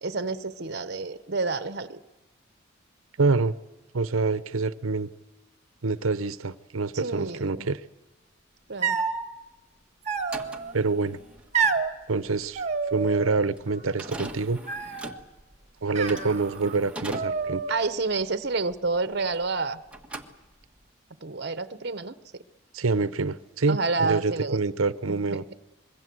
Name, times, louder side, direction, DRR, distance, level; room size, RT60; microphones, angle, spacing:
voice 1, 0.0-2.0 6.9-7.7 8.7-9.0 17.7-19.8 21.2-22.2 23.7-24.6 25.1-25.4, right 3 dB, 50° right, 1.0 m, -29 dB
voice 2, 3.2-3.6 3.9-5.1 5.8-7.8 10.7-11.2 12.1-15.0 15.8-17.6 22.7-25.4, right 3 dB, 80° right, 0.8 m, -26 dB
sound 1, 8.8-9.3 10.1-10.7 11.5-11.9 12.6-13.4 13.7-14.2 14.7-15.2 15.9-16.8 17.1-17.9, right 5 dB, 35° right, 1.7 m, -29 dB
sound 2, 10.2-19.6 19.9-20.9, right 2 dB, 5° right, 1.6 m, -42 dB
25.5 x 22.5 x 7.8 m
head